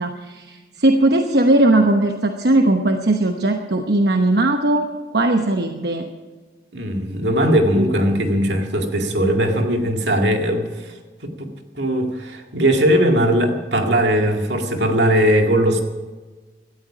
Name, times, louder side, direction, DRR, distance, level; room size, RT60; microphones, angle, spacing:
voice 1, 0.0-4.8 5.1-6.1, right 2 dB, 70° right, 4 dB, 1.0 m, -18 dB
voice 2, 6.7-10.9 11.2-11.5 11.7-15.8, equal, 85° right, 3 dB, 2.2 m, -19 dB
17.5 x 13.5 x 5.0 m, 1.3 s
head